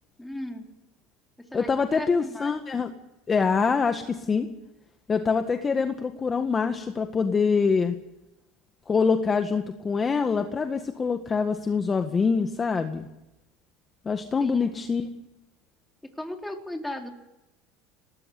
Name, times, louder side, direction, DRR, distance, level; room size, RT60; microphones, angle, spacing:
voice 1, 0.2-0.7 1.4-2.6 14.4-14.7 16.0-17.1, left 1 dB, 5° left, 3 dB, 3.9 m, -36 dB
voice 2, 1.5-2.9 3.3-4.5 5.1-8.0 8.9-13.1 14.1-15.1, left 5 dB, 25° left, 7 dB, 1.7 m, -25 dB
19.5 x 18.0 x 9.5 m, 0.92 s
supercardioid pair, 100°, 0 cm